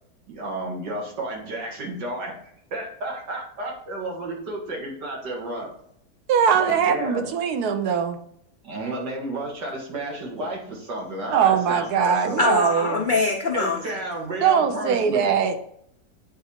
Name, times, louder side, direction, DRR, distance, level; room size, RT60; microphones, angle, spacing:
voice 1, 0.3-2.4 2.7-5.7 6.6-7.3 8.6-12.4 13.5-15.3, right 1 dB, 85° right, -1 dB, 2.2 m, -32 dB
voice 2, 6.3-8.2 11.3-13.1 14.4-15.6, right 7 dB, 70° right, 8 dB, 1.2 m, -21 dB
voice 3, 12.4-14.0, left 3 dB, 65° left, 0 dB, 0.5 m, -23 dB
9.1 x 3.9 x 2.8 m, 0.70 s
omnidirectional pair, 1.8 m